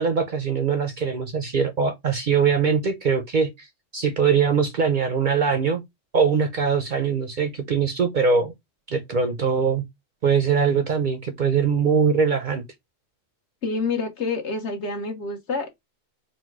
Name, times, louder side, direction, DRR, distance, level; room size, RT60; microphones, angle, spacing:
voice 1, 0.0-3.7 3.9-5.8 6.1-8.5 8.9-9.8 10.2-12.6, right 6 dB, 50° right, 0.6 m, -22 dB
voice 2, 13.6-15.7, left 4 dB, 65° left, 1.3 m, -27 dB
4.1 x 2.3 x 4.5 m
omnidirectional pair, 1.3 m